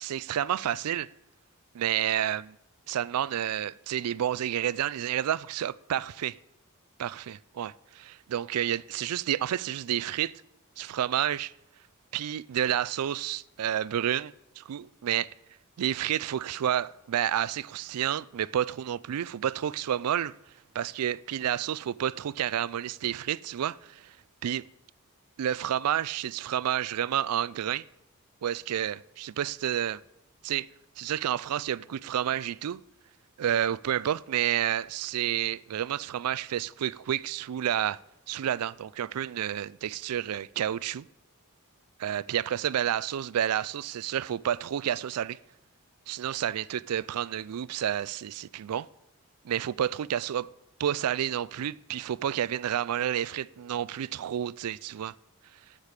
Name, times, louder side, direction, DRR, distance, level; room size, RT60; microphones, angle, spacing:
voice 1, 0.0-1.1 1.7-2.6 2.9-6.4 7.0-10.3 10.8-11.5 12.1-15.3 15.8-20.3 20.7-24.2 24.4-24.6 25.4-27.8 28.4-30.0 30.4-30.7 31.0-32.8 33.4-38.0 38.3-41.1 42.0-45.4 46.1-48.9 49.4-50.5 50.8-55.1, right 10 dB, 80° right, 0.4 m, -30 dB
9.8 x 6.7 x 8.2 m
head